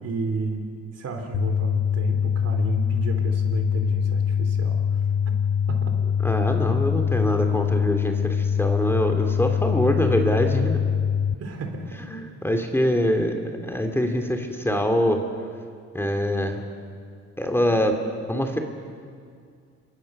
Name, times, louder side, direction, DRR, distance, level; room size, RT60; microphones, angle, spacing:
voice 1, 0.0-0.7 0.9-5.0 5.7-5.9 11.4-12.0, right 3 dB, 55° right, 4 dB, 3.9 m, -32 dB
sound 1, 1.3-11.4, left 8 dB, 45° left, 0.8 m, -23 dB
voice 2, 6.2-10.8 12.1-15.2 15.9-16.6 17.4-18.0 18.3-18.6, equal, 10° left, 4 dB, 2.6 m, -24 dB
27.0 x 23.0 x 6.6 m, 2.2 s
cardioid pair, 90°, 30 cm